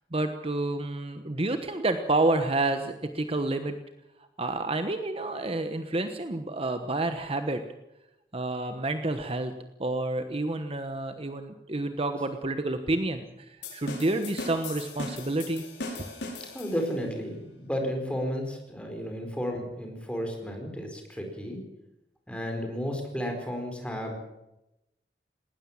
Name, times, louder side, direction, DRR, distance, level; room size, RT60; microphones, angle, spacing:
voice 1, 0.1-3.7 4.4-7.6 8.3-9.5 9.8-15.6, right 2 dB, 35° right, 8 dB, 1.2 m, -29 dB
sound 1, 13.6-17.1, left 2 dB, 80° left, 5.9 m, -39 dB
voice 2, 16.5-21.6 22.3-24.2, equal, 5° left, 3 dB, 4.5 m, -33 dB
19.0 x 19.0 x 7.4 m, 0.92 s
head